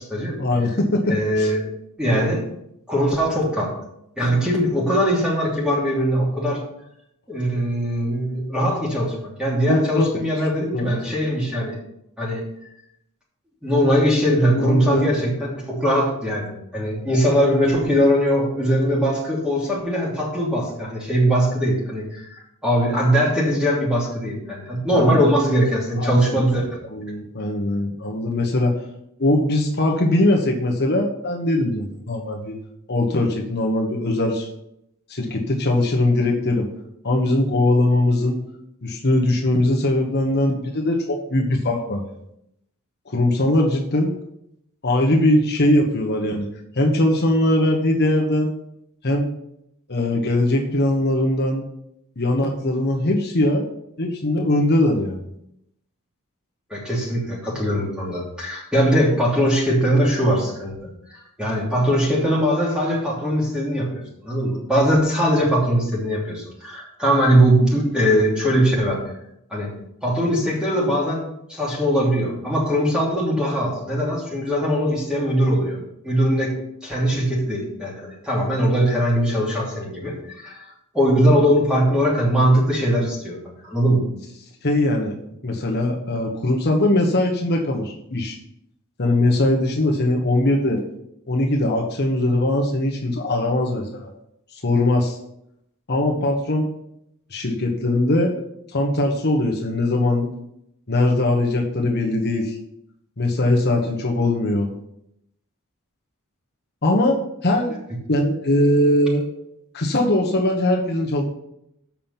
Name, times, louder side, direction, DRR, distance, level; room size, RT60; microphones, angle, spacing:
voice 1, 0.4-1.5 9.7-10.1 10.7-10.9 14.5-15.2 24.9-25.4 26.0-26.4 26.9-28.7 29.2-32.6 32.9-34.5 35.1-36.7 37.0-38.4 38.8-42.1 43.1-44.1 44.8-46.5 46.7-48.5 49.0-49.3 49.9-51.6 52.2-53.7 54.0-55.3 84.6-85.1 85.4-88.4 89.0-90.8 91.3-94.1 94.5-95.2 95.9-96.7 97.3-98.3 98.7-100.3 100.9-102.6 103.2-104.7 106.8-107.2 107.4-107.7 108.1-109.2 109.7-111.2, left 1 dB, 50° left, 0 dB, 1.2 m, -21 dB
voice 2, 1.1-1.6 2.0-2.4 2.9-3.7 4.2-6.6 7.3-11.8 12.2-12.4 13.6-26.7 56.7-60.7 61.1-63.9 64.2-69.0 69.5-69.7 70.0-71.2 71.5-75.8 76.0-76.6 76.8-80.6 80.9-83.4 83.6-84.0, equal, 5° right, -4 dB, 2.9 m, -21 dB
7.4 x 5.7 x 7.3 m, 0.79 s
head